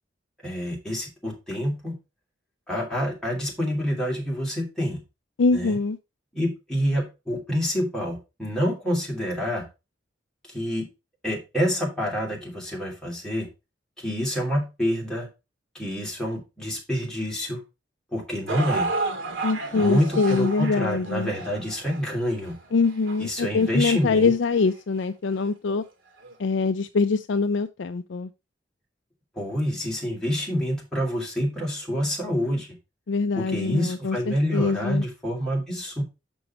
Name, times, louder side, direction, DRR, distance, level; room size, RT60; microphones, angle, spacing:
voice 1, 0.4-2.0 2.7-5.0 5.5-5.8 6.3-9.7 10.5-10.9 11.2-13.5 14.0-15.3 15.7-17.6 18.1-18.9 19.7-22.6 23.2-24.3 29.4-32.7 33.3-36.0, equal, 5° left, 2.8 m, -27 dB
voice 2, 5.4-6.0 19.4-21.3 22.7-25.8 26.4-28.3 33.1-35.0, left 4 dB, 70° left, 0.4 m, -24 dB
sound 1, 18.5-24.7 25.4-25.5 26.2-26.3, right 3 dB, 85° right, 1.5 m, -33 dB
6.1 x 6.1 x 4.3 m
head